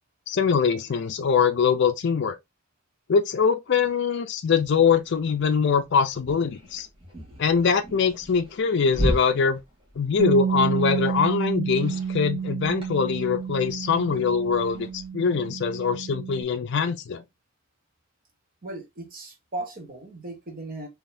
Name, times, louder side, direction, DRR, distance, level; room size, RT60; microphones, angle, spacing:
voice 1, 0.3-2.4 3.1-6.9 7.4-9.6 10.0-17.2, left 6 dB, 55° left, 0.4 m, -23 dB
sound 1, 4.6-15.1, equal, 25° right, 1.5 m, -37 dB
Bass guitar, 10.2-16.4, right 6 dB, 70° right, 0.3 m, -30 dB
voice 2, 18.6-20.9, right 2 dB, 40° right, 1.0 m, -37 dB
3.8 x 2.9 x 2.5 m
head